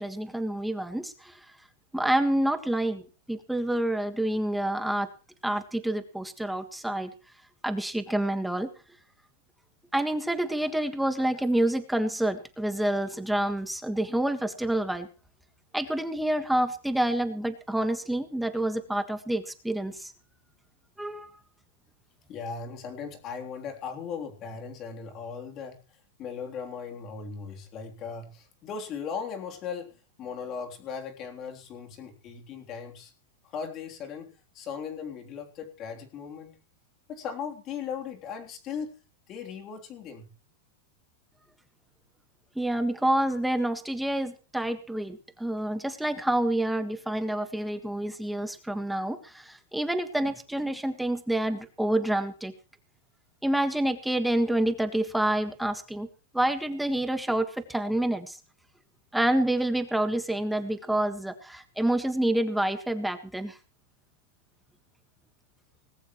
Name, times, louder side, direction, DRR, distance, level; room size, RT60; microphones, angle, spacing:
voice 1, 0.0-1.3 1.9-3.0 3.3-5.1 5.4-7.1 7.6-8.7 9.9-15.1 15.7-20.1 21.0-21.3 42.5-52.5 53.4-56.1 56.3-58.4 59.1-63.6, right 1 dB, ahead, 8 dB, 1.6 m, -28 dB
voice 2, 22.3-25.8 26.2-33.1 33.4-36.6 37.1-39.0 39.3-40.3, left 6 dB, 30° left, 3 dB, 3.4 m, -38 dB
20.0 x 17.0 x 3.2 m, 0.35 s
supercardioid pair, 160°, 0 cm